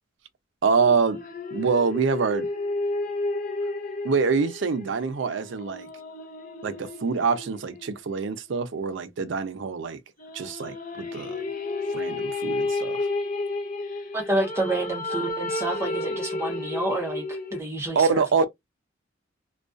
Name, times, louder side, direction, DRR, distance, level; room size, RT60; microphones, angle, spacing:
voice 1, 0.6-1.2 1.5-2.5 4.0-5.9 6.6-10.0 10.3-11.5 11.9-13.0 18.0-18.5, right 5 dB, 65° right, 0.4 m, -25 dB
sound 1, 0.7-8.4 10.2-17.6, left 2 dB, 40° left, 0.6 m, -32 dB
voice 2, 14.1-18.5, right 2 dB, 15° right, 0.6 m, -29 dB
2.3 x 2.2 x 2.4 m
head